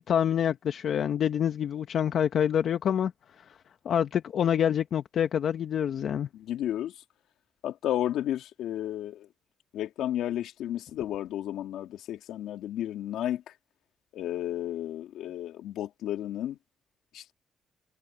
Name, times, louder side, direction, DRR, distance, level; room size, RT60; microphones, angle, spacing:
voice 1, 0.0-3.1 3.4-3.5 3.8-6.3, left 9 dB, 65° left, 1.0 m, -26 dB
voice 2, 6.3-6.9 7.6-9.3 9.7-13.4 14.1-16.6 17.1-17.3, left 12 dB, 85° left, 2.9 m, -32 dB
cardioid pair, 90°, 0 cm